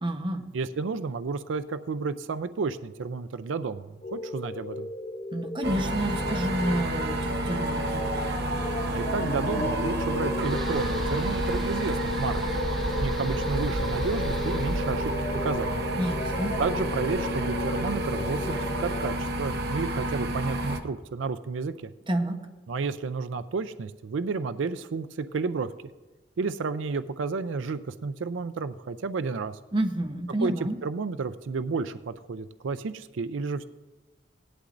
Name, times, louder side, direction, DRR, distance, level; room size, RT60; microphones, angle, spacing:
voice 1, 0.0-0.5 5.3-8.0 16.0-16.5 22.1-22.4 29.7-30.8, right 1 dB, 25° right, 3 dB, 1.0 m, -29 dB
voice 2, 0.5-4.9 8.8-12.4 13.0-15.1 15.4-15.8 16.6-21.9 22.7-25.7 26.4-29.5 30.4-33.6, right 4 dB, 85° right, 12 dB, 0.4 m, -31 dB
sound 1, 4.0-19.1, left 2 dB, 35° left, 0.7 m, -35 dB
sound 2, 5.6-20.8, right 1 dB, 60° right, 1.0 m, -30 dB
sound 3, 10.4-17.6, right 1 dB, ahead, 1.2 m, -36 dB
18.0 x 11.5 x 2.6 m, 1.2 s
head